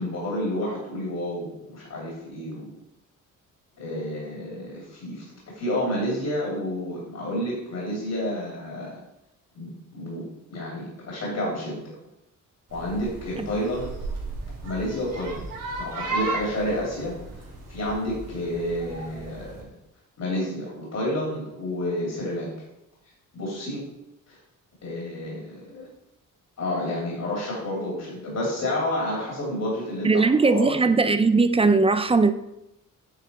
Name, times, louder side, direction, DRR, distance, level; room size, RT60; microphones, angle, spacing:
voice 1, 0.0-2.7 3.8-5.2 5.5-8.9 9.5-10.2 10.5-11.8 12.7-13.9 14.6-15.4 15.8-19.7 20.2-22.5 23.3-23.8 24.3-24.4 24.8-25.9 26.6-30.8, left 1 dB, 60° left, 2.8 m, -30 dB
sound 1, 12.7-19.6, right 3 dB, 80° right, 2.4 m, -35 dB
voice 2, 30.0-32.3, right 3 dB, 20° right, 0.4 m, -19 dB
8.9 x 4.2 x 4.2 m
cardioid pair, 105°, 33 cm